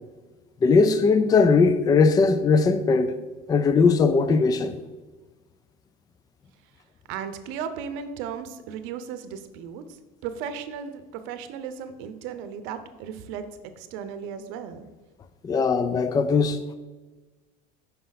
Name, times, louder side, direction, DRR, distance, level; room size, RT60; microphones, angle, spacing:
voice 1, 0.6-3.1 3.5-4.8 15.4-16.7, left 4 dB, 20° left, 0.3 m, -19 dB
voice 2, 7.1-9.8 10.2-13.4 13.8-14.8, right 7 dB, 65° right, 0.7 m, -35 dB
5.6 x 5.2 x 4.0 m
supercardioid pair, 110°, 21 cm